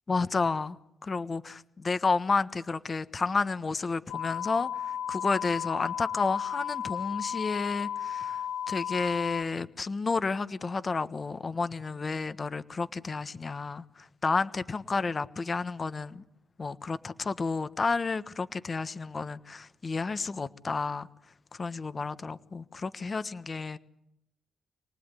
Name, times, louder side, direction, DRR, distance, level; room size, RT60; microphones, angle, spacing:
voice 1, 0.1-0.8 1.0-16.2 16.6-21.1 21.5-23.8, left 4 dB, 30° left, 1.3 m, -31 dB
sound 1, 4.1-9.4, left 9 dB, 85° left, 1.1 m, -34 dB
28.0 x 19.5 x 9.9 m
cardioid pair, 90°, 0 cm